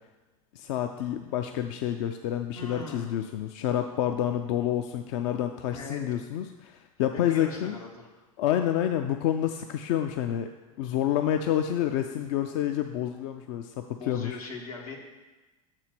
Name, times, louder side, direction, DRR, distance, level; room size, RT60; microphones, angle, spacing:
voice 1, 0.5-7.8 8.4-10.5 10.8-14.4, left 11 dB, 60° left, 6 dB, 0.4 m, -28 dB
voice 2, 2.5-3.2 5.1-5.4 5.7-6.0 7.1-8.1 10.7-10.8 12.0-12.7 14.0-15.0, left 4 dB, 85° left, -1 dB, 1.4 m, -41 dB
6.7 x 4.4 x 6.0 m, 1.2 s
hypercardioid pair, 85°, 18 cm